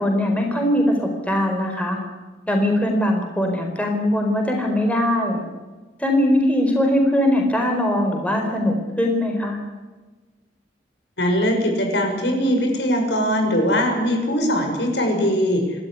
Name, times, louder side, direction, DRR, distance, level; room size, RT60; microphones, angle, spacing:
voice 1, 0.0-2.0 2.5-5.4 6.0-9.6, left 1 dB, 10° left, 2 dB, 4.5 m, -21 dB
voice 2, 11.2-15.6, equal, 70° left, 4 dB, 6.6 m, -21 dB
28.5 x 13.0 x 9.7 m, 1.2 s
head